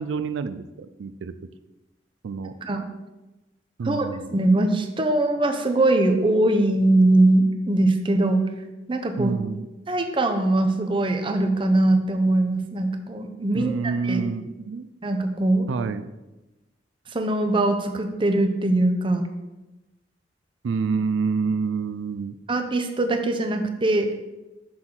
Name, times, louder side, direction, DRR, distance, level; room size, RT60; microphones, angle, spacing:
voice 1, 0.0-1.3 2.2-2.5 3.8-4.3 9.2-9.6 13.5-14.9 15.7-16.1 20.6-22.3, right 5 dB, 85° right, 11 dB, 0.4 m, -27 dB
voice 2, 4.3-8.5 8.9-9.3 9.9-14.2 15.0-15.7 17.1-19.3 22.5-24.1, right 2 dB, 25° right, 6 dB, 0.6 m, -21 dB
6.0 x 6.0 x 3.8 m, 1.0 s
head